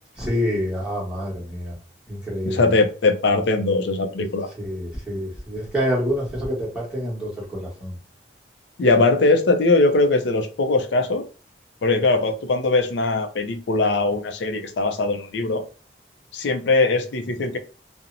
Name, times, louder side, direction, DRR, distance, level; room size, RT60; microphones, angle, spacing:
voice 1, 0.2-1.7 2.1-2.6 4.6-8.0, equal, 5° right, 1.0 m, -27 dB
voice 2, 2.4-4.5 8.8-11.2 11.8-15.6 16.3-17.6, left 3 dB, 75° left, 0.4 m, -20 dB
2.8 x 2.0 x 2.5 m
head